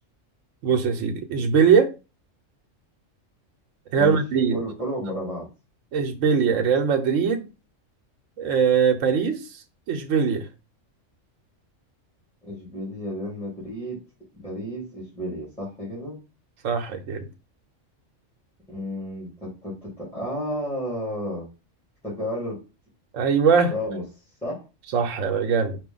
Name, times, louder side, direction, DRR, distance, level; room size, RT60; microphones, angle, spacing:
voice 1, 0.6-1.9 3.9-4.6 5.9-7.5 8.4-9.4 9.9-10.5 16.6-17.3 23.1-23.7 24.9-25.8, right 6 dB, 80° right, 1.1 m, -21 dB
voice 2, 4.5-5.5 12.4-14.0 14.3-16.2 18.7-21.4 22.0-22.6 23.7-24.0 24.4-24.6, equal, 5° left, 2.4 m, -32 dB
5.0 x 2.6 x 3.8 m
omnidirectional pair, 1.3 m